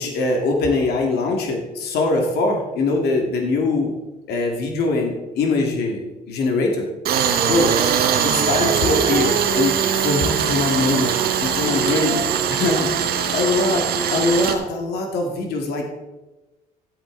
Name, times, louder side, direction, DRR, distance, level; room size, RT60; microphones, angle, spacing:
voice 1, 0.0-3.9 4.3-6.9 7.5-7.7 8.2-13.8 14.1-15.8, left 3 dB, 75° left, 2 dB, 2.1 m, -22 dB
Tools, 7.1-14.6, right 8 dB, 65° right, 1.3 m, -21 dB
Female singing, 7.5-13.9, right 6 dB, 40° right, 0.9 m, -30 dB
14.5 x 8.1 x 3.9 m, 1.1 s
cardioid pair, 110°, 17 cm